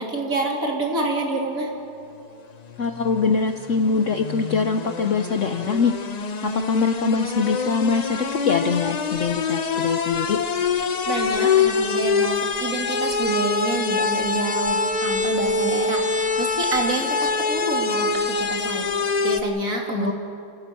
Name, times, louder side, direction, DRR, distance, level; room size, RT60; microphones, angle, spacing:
voice 1, 0.0-1.7 11.1-18.9 19.2-20.1, right 2 dB, 45° right, 0 dB, 3.2 m, -27 dB
sound 1, 2.7-19.4, left 4 dB, 80° left, 0.3 m, -25 dB
voice 2, 2.8-5.9 6.4-10.4 19.9-20.1, left 5 dB, 55° left, 7 dB, 0.9 m, -23 dB
28.5 x 16.0 x 7.6 m, 2.7 s
omnidirectional pair, 2.0 m